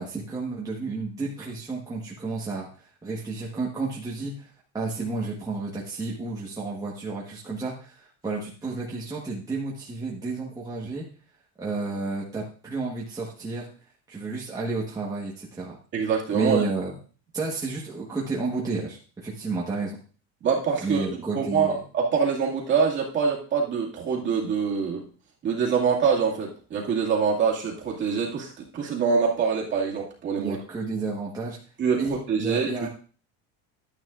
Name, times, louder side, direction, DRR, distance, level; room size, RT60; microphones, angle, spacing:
voice 1, 0.0-11.0 11.6-13.7 14.1-15.8 16.3-16.9 17.3-20.0 20.8-21.8 30.4-31.6 32.0-32.9, right 3 dB, 10° right, -4 dB, 1.3 m, -31 dB
voice 2, 15.9-16.6 20.4-21.1 21.3-25.0 25.4-30.6 31.8-32.9, right 6 dB, 35° right, -2 dB, 2.2 m, -25 dB
11.5 x 9.7 x 2.5 m, 0.39 s
cardioid pair, 160°, 33 cm